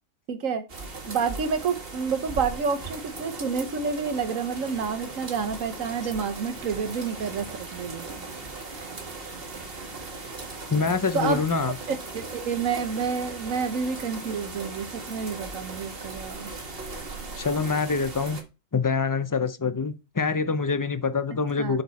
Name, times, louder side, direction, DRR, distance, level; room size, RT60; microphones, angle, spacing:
voice 1, 0.3-0.6 1.1-8.2 11.1-11.4 11.9-16.5 21.6-21.8, right 5 dB, 85° right, 1.5 m, -29 dB
sound 1, 0.7-18.4, right 3 dB, 45° right, 1.9 m, -38 dB
voice 2, 10.7-11.8 17.4-18.4 18.7-21.8, left 4 dB, 30° left, 0.4 m, -25 dB
7.9 x 6.8 x 4.2 m
omnidirectional pair, 1.3 m